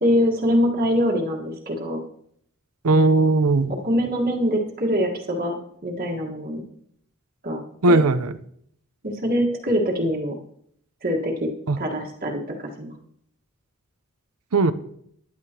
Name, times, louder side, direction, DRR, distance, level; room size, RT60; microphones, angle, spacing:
voice 1, 0.0-2.0 2.9-3.3 3.8-5.6 5.8-6.6 7.4-8.0 9.0-10.3 11.0-11.5 11.8-12.4 12.8-12.9, equal, 40° right, -1 dB, 1.6 m, -24 dB
voice 2, 2.8-3.7 7.8-8.3 11.7-11.8 14.5-14.7, right 2 dB, 80° right, 12 dB, 0.7 m, -18 dB
15.5 x 10.5 x 2.9 m, 0.69 s
head